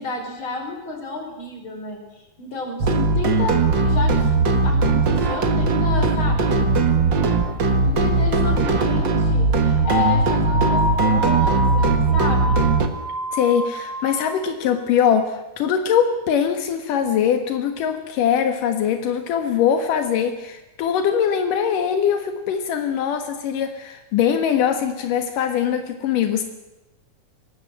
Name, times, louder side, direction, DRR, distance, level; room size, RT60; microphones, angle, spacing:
voice 1, 0.0-2.0 2.4-6.6 7.8-12.6, left 3 dB, 35° left, 3 dB, 5.8 m, -31 dB
sound 1, 2.8-12.9, right 3 dB, 40° right, 2.0 m, -19 dB
sound 2, 9.8-14.5, left 1 dB, 20° left, 1.4 m, -26 dB
voice 2, 13.3-26.4, left 8 dB, 85° left, 6 dB, 3.2 m, -22 dB
23.5 x 19.5 x 7.8 m, 0.98 s
omnidirectional pair, 3.7 m